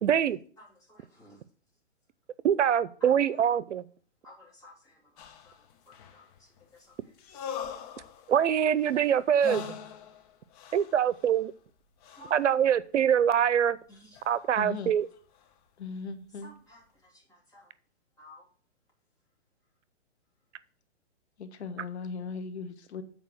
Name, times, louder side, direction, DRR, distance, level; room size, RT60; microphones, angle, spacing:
voice 1, 0.0-0.4 2.4-3.8 8.3-9.6 10.7-11.5 12.3-13.8 14.3-15.1, right 9 dB, 85° right, 17 dB, 0.7 m, -24 dB
voice 2, 0.6-1.4 3.0-3.4 4.2-5.0 5.9-6.2 6.9-7.0 12.2-12.4 13.9-14.1 16.4-16.8 17.1-17.7 18.2-18.5, left 1 dB, 10° left, -3 dB, 2.8 m, -53 dB
sound 1, 5.2-6.6 7.2-11.4 12.0-12.5 14.1-14.5 15.4-15.5, left 7 dB, 35° left, 1.1 m, -42 dB
voice 3, 14.6-14.9 15.8-16.5 21.4-23.0, left 4 dB, 65° left, 8 dB, 1.2 m, -38 dB
8.0 x 4.6 x 6.4 m, 0.43 s
hypercardioid pair, 145°, 35 cm